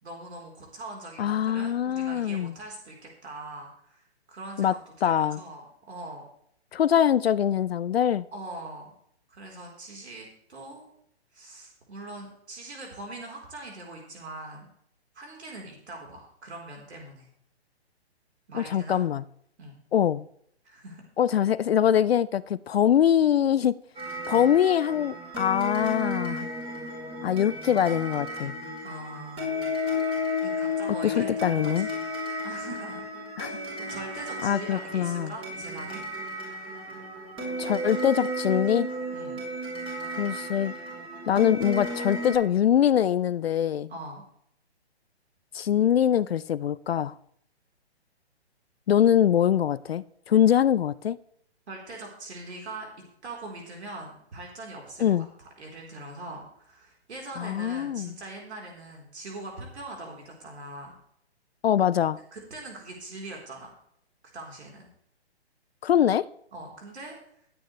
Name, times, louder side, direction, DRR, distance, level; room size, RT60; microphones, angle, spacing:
voice 1, 0.0-6.2 8.3-8.9 9.3-10.8 11.3-14.7 15.1-17.3 18.5-19.0 19.6-19.8 20.6-21.0 24.3-24.5 28.8-29.6 30.4-32.1 32.4-33.0 33.4-36.0 39.1-39.4 43.9-44.2 51.7-52.9 53.2-61.0 62.3-63.7 64.3-64.9 66.5-67.2, right 2 dB, 75° right, 0 dB, 4.0 m, -42 dB
voice 2, 1.2-2.5 4.6-4.8 5.0-5.4 6.7-8.3 18.5-19.2 19.9-20.2 21.2-23.7 24.3-26.5 27.2-28.5 31.0-31.9 33.4-33.5 34.4-35.3 37.6-38.9 40.2-40.7 41.3-43.9 45.5-47.1 48.9-51.2 55.0-55.3 57.4-58.1 61.6-62.2 65.8-66.3, left 9 dB, 65° left, 17 dB, 0.6 m, -23 dB
sound 1, 24.0-42.4, left 1 dB, 15° right, 4.3 m, -33 dB
18.5 x 9.2 x 3.3 m, 0.69 s
hypercardioid pair, 145°, 33 cm